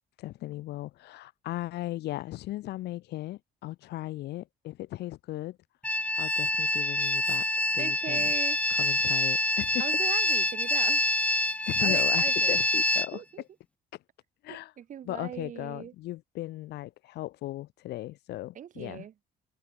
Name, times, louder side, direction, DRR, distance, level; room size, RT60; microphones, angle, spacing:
voice 1, 0.2-5.6 6.2-7.5 7.7-8.3 8.7-9.9 11.7-13.2 14.4-14.7 15.1-19.1, left 16 dB, 80° left, 5.2 m, -37 dB
sound 1, 5.8-13.1, left 1 dB, 5° left, 1.2 m, -26 dB
voice 2, 7.8-8.6 9.8-11.0 11.8-12.6 13.1-13.4 14.5-15.9 18.6-19.1, right 9 dB, 50° right, 1.6 m, -39 dB
cardioid pair, 110°, 17 cm